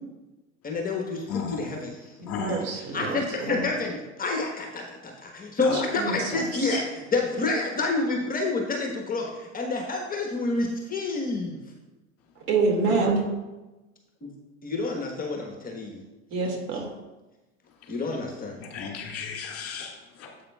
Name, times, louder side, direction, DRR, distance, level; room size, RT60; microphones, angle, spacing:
voice 1, 0.6-2.1 2.9-11.6 14.6-16.0 17.9-18.6, left 3 dB, 25° left, 1 dB, 1.2 m, -28 dB
voice 2, 1.3-1.6 2.3-2.7 5.6-5.8 6.5-6.8 18.6-20.3, left 5 dB, 40° left, 0 dB, 2.0 m, -34 dB
voice 3, 2.4-3.2 3.5-3.8 5.7-6.8 12.5-13.2 16.3-16.9, right 3 dB, 55° right, 1 dB, 2.1 m, -27 dB
9.3 x 8.0 x 2.3 m, 1.1 s
hypercardioid pair, 100°, 37 cm